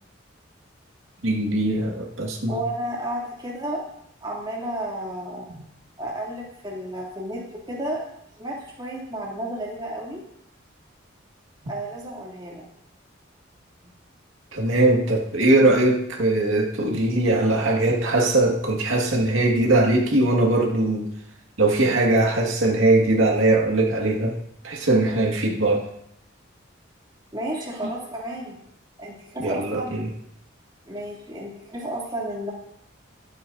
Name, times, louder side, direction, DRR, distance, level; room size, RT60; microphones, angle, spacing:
voice 1, 1.2-2.6 14.5-21.1 21.6-24.4 24.6-25.9 29.4-30.1, right 2 dB, 80° right, -1 dB, 2.0 m, -20 dB
voice 2, 2.5-3.8 4.2-5.5 6.0-8.0 8.4-10.2 11.6-12.6 27.3-28.5 29.0-30.1 30.9-32.5, right 1 dB, 20° right, -4 dB, 2.9 m, -32 dB
22.0 x 9.4 x 2.7 m, 0.74 s
head